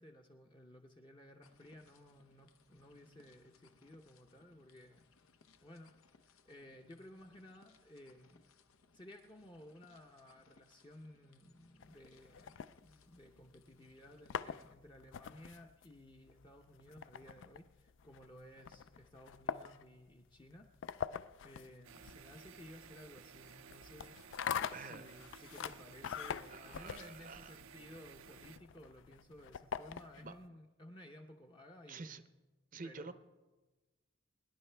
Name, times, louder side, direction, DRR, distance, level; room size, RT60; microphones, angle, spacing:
voice 1, 0.0-5.1 5.6-5.9 6.2-8.5 8.9-20.7 21.4-32.2 32.8-33.1, left 1 dB, 20° left, 2 dB, 0.7 m, -56 dB
sound 1, 1.4-14.7, left 4 dB, 90° left, 0.8 m, -69 dB
sound 2, 11.8-13.4 14.0-30.4, left 7 dB, 65° left, 0.3 m, -45 dB
sound 3, 21.8-28.6, right 7 dB, 80° right, 0.5 m, -56 dB
voice 2, 24.7-25.1 26.5-27.6 30.2-30.4 31.9-32.2 32.7-33.1, right 4 dB, 40° right, 11 dB, 0.6 m, -48 dB
23.0 x 10.5 x 3.4 m, 1.2 s
head